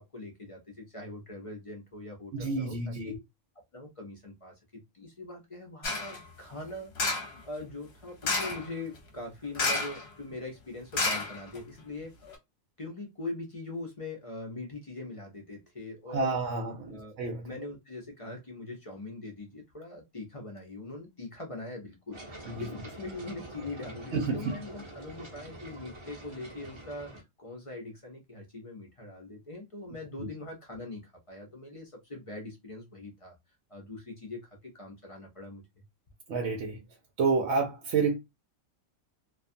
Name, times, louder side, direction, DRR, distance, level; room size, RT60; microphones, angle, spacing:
voice 1, 0.0-3.1 3.7-4.5 4.9-12.1 12.8-16.4 16.9-17.2 17.4-33.3 33.7-35.6, left 2 dB, 35° left, 0.5 m, -42 dB
voice 2, 2.3-3.2 16.1-17.5 22.5-22.7 24.1-24.5 30.2-30.3 36.3-36.8 37.2-38.2, right 4 dB, 70° right, 0.9 m, -29 dB
sound 1, 5.8-6.2 7.0-7.4 8.2-8.7 9.5-10.1 10.3-10.4 10.9-11.8 12.3-12.4, left 3 dB, 55° left, 1.0 m, -30 dB
sound 2, 22.1-27.2, right 1 dB, 25° right, 0.7 m, -46 dB
2.4 x 2.3 x 2.5 m
omnidirectional pair, 1.4 m